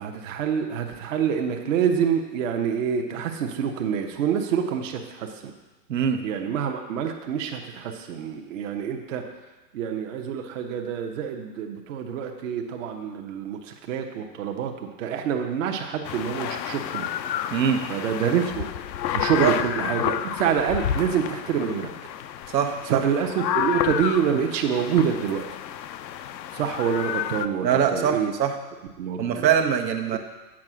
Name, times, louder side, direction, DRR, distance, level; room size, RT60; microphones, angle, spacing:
voice 1, 0.0-5.5 6.2-9.2 9.7-17.1 17.9-18.7 19.1-21.9 22.9-25.5 26.5-28.3 29.0-29.5 30.1-30.2, right 7 dB, 50° right, 3 dB, 0.9 m, -26 dB
voice 2, 5.9-6.2 17.5-17.8 19.4-19.5 22.5-23.0 27.6-28.6 29.2-30.2, right 8 dB, 85° right, 4 dB, 1.1 m, -23 dB
sound 1, 16.0-27.5, left 10 dB, 85° left, 0.6 m, -30 dB
7.4 x 5.4 x 6.1 m, 1.1 s
hypercardioid pair, 145°, 50 cm